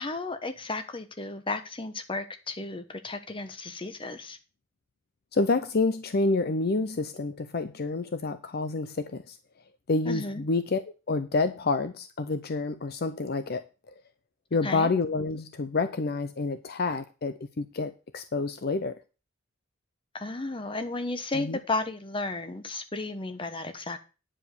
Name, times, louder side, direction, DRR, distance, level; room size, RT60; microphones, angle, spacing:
voice 1, 0.0-4.4 10.0-10.4 14.6-14.9 20.1-24.0, left 2 dB, 25° left, 1.1 m, -33 dB
voice 2, 5.3-9.4 9.9-10.8 11.1-13.6 14.5-19.0 21.3-21.6, left 3 dB, 55° left, 0.6 m, -28 dB
9.9 x 5.0 x 6.8 m
head